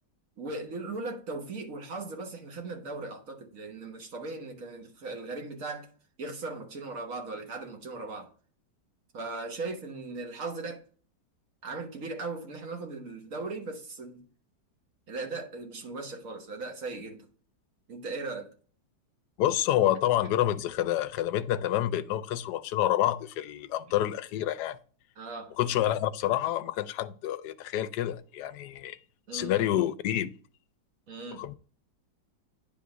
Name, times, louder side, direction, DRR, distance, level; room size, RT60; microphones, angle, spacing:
voice 1, 0.4-5.9 6.2-8.3 9.1-10.8 11.6-14.2 15.1-17.3 17.9-18.5 25.2-25.5 29.3-29.5 31.1-31.4, right 3 dB, 50° right, 1.5 m, -38 dB
voice 2, 19.4-24.8 25.6-29.0 29.3-30.3 31.3-31.5, left 12 dB, 70° left, 1.1 m, -28 dB
9.5 x 3.6 x 5.0 m
omnidirectional pair, 2.0 m